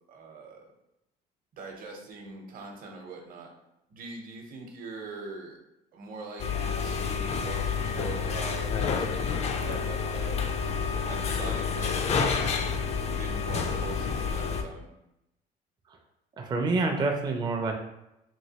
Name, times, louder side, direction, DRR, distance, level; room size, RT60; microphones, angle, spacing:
voice 1, 0.1-0.7 1.5-3.5 3.9-5.6 5.9-10.4 11.1-12.4 13.1-14.9, right 3 dB, 55° right, 2 dB, 0.8 m, -42 dB
sound 1, 6.4-14.6, left 6 dB, 40° left, 0.3 m, -29 dB
voice 2, 16.4-17.7, right 3 dB, 25° right, 2 dB, 0.4 m, -27 dB
3.0 x 2.6 x 2.8 m, 0.86 s
cardioid pair, 110°, 17 cm